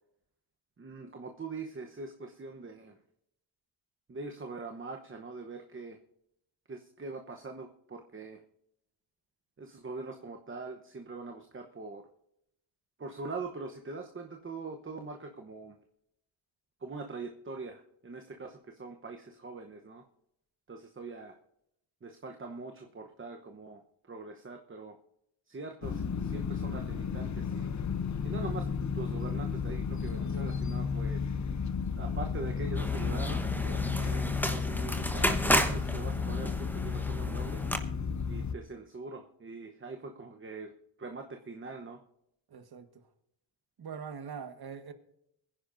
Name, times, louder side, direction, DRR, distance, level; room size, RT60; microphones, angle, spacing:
voice 1, 0.8-3.0 4.1-6.0 6.7-8.4 9.6-12.1 13.0-15.8 16.8-20.0 20.7-21.4 22.0-23.8 24.1-25.0 25.5-27.7 28.2-28.7 28.9-31.2 31.8-37.6 38.3-40.7 41.0-42.0, right 3 dB, 25° right, 1.0 m, -42 dB
sound 1, 25.8-38.6, left 5 dB, 35° left, 0.8 m, -33 dB
sound 2, 32.7-37.8, equal, 5° left, 1.1 m, -32 dB
voice 2, 42.5-43.1 43.8-44.9, right 6 dB, 50° right, 1.6 m, -43 dB
22.0 x 10.5 x 2.6 m
cardioid pair, 95°, 48 cm